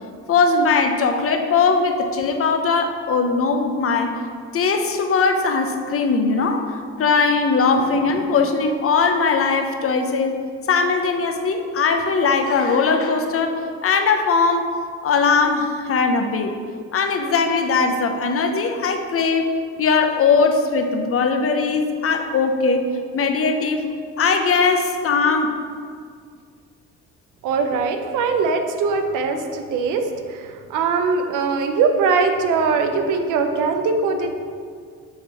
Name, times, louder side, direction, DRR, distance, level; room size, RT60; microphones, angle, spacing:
voice 1, 0.3-4.1 4.5-10.4 10.7-14.7 15.0-16.5 16.9-19.5 19.8-22.9 23.1-23.9 24.2-25.5, left 4 dB, 50° left, 5 dB, 0.7 m, -20 dB
voice 2, 27.4-34.3, right 4 dB, 90° right, 5 dB, 0.6 m, -21 dB
6.5 x 3.1 x 5.4 m, 2.1 s
cardioid pair, 90°, 30 cm